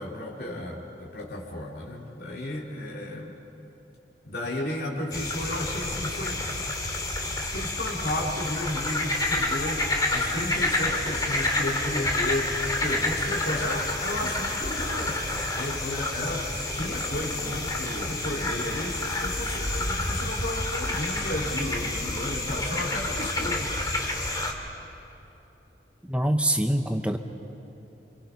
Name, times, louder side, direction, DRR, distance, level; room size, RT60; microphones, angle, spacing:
voice 1, 0.0-3.3 4.2-6.4 7.1-23.7, left 1 dB, 60° left, -4 dB, 2.8 m, -33 dB
sound 1, 5.1-24.5, left 2 dB, 20° left, 2.2 m, -29 dB
voice 2, 26.1-27.2, right 1 dB, 5° right, 6 dB, 0.8 m, -24 dB
28.5 x 26.0 x 5.7 m, 2.8 s
head